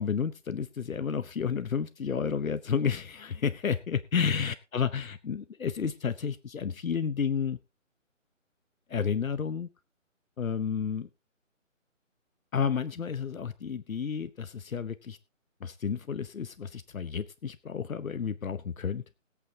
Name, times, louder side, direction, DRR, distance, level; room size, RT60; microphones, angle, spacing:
voice 1, 0.0-7.6 8.9-9.7 10.4-11.1 12.5-15.2 15.6-19.0, left 6 dB, 85° left, 12 dB, 0.9 m, -31 dB
20.5 x 8.4 x 2.8 m, 0.29 s
hypercardioid pair, 180°, 40 cm